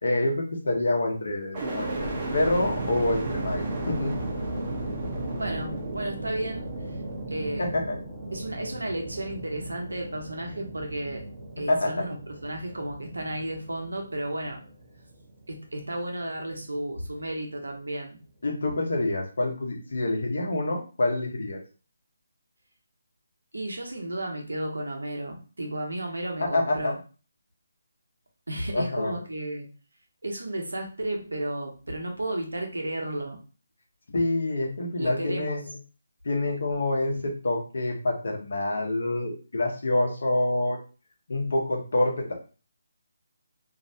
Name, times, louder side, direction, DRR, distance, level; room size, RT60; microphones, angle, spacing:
voice 1, 0.0-4.1 7.6-8.0 11.7-12.1 18.4-21.6 26.4-26.9 28.7-29.1 34.1-35.6 36.2-40.8 41.3-42.3, left 2 dB, 65° left, 1 dB, 0.8 m, -27 dB
sound 1, 1.5-15.5 16.0-16.8, right 2 dB, 25° right, 0.7 m, -35 dB
voice 2, 5.4-7.0 7.3-7.7 8.3-11.2 11.6-12.2 12.4-14.6 15.5-18.2 23.5-26.9 28.5-29.7 30.2-33.4 35.0-35.6, right 1 dB, 85° right, 2 dB, 0.8 m, -33 dB
2.5 x 2.0 x 2.6 m, 0.35 s
figure-of-eight pair, 155°, 0 cm